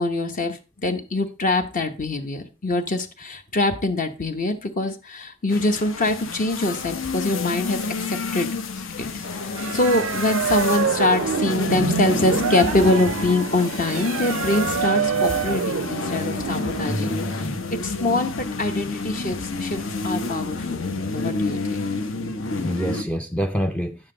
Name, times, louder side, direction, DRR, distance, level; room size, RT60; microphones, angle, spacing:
voice 1, 0.0-8.5 8.8-17.5 17.8-20.9 21.1-21.9, left 2 dB, 40° left, 0.9 m, -24 dB
sound 1, 5.5-23.0, left 3 dB, 70° left, 1.0 m, -30 dB
sound 2, 9.2-17.4, left 2 dB, 90° left, 1.6 m, -35 dB
sound 3, 9.6-16.9, right 7 dB, 70° right, 0.4 m, -26 dB
voice 2, 16.9-17.6 22.6-24.0, equal, 5° left, 0.4 m, -27 dB
9.8 x 7.4 x 3.8 m
head